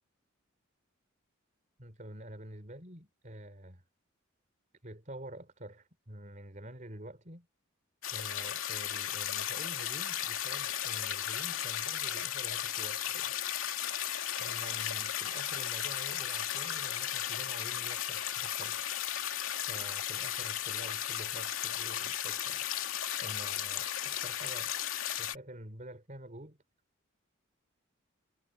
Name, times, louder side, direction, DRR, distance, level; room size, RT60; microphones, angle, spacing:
voice 1, 1.8-3.8 4.8-7.5 8.1-13.4 14.4-18.8 19.6-22.7 23.2-24.7 25.2-26.6, right 1 dB, 40° right, 4.2 m, -48 dB
sound 1, 8.0-25.4, left 11 dB, 85° left, 2.4 m, -35 dB
head